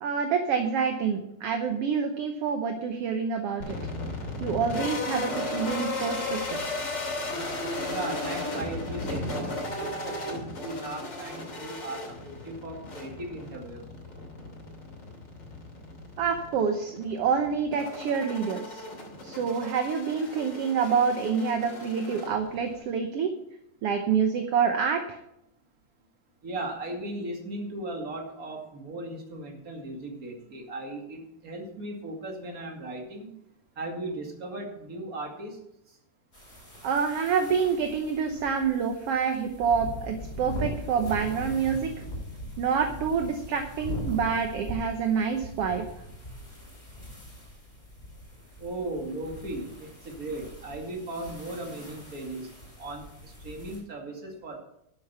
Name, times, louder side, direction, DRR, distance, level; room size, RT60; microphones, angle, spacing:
voice 1, 0.0-3.8 4.4-6.7 16.2-18.8 19.2-23.3 23.8-25.2 36.8-41.9 42.6-45.9, right 6 dB, 65° right, 5 dB, 1.7 m, -27 dB
sound 1, 3.6-22.8, left 2 dB, 35° left, 3.2 m, -35 dB
voice 2, 7.8-13.8 26.4-33.4 33.8-35.6 35.9-36.0 48.6-52.5 52.8-54.6, right 2 dB, 30° right, 1 dB, 2.4 m, -37 dB
sound 2, 36.3-53.8, equal, 15° left, 4.6 m, -41 dB
11.5 x 8.5 x 5.7 m, 0.80 s
omnidirectional pair, 3.5 m